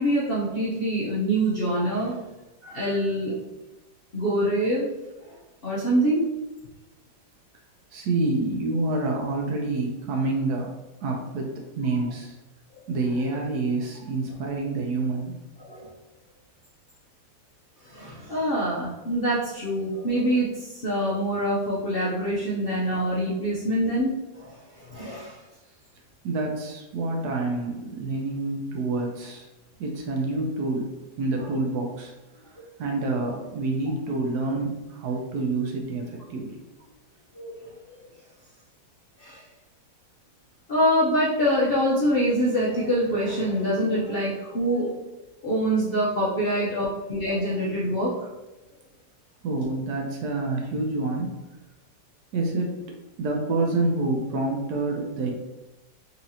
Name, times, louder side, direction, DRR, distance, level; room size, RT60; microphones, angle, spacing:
voice 1, 0.0-2.2 2.6-3.3 4.1-4.9 5.3-5.4 5.6-6.3 15.6-15.9 17.8-25.4 32.6-32.7 37.3-37.7 39.2-39.4 40.7-45.0 45.4-48.1, equal, 75° left, -6 dB, 0.5 m, -25 dB
voice 2, 7.9-10.7 11.0-12.3 12.9-15.3 26.2-29.5 29.8-30.9 31.2-32.1 32.8-36.5 49.4-51.3 52.3-55.3, right 2 dB, 75° right, 1 dB, 1.0 m, -27 dB
4.1 x 2.8 x 2.7 m, 1.1 s
omnidirectional pair, 2.0 m